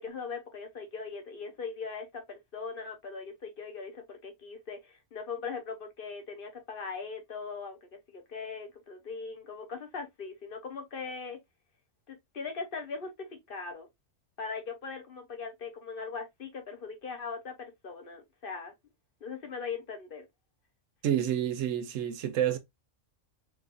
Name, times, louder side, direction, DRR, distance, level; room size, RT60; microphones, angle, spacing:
voice 1, 0.0-11.4 12.1-13.9 14.4-18.7 19.2-20.3, left 5 dB, 50° left, 0.9 m, -40 dB
voice 2, 21.0-22.6, right 10 dB, 90° right, 1.0 m, -29 dB
3.1 x 3.1 x 2.5 m
omnidirectional pair, 1.3 m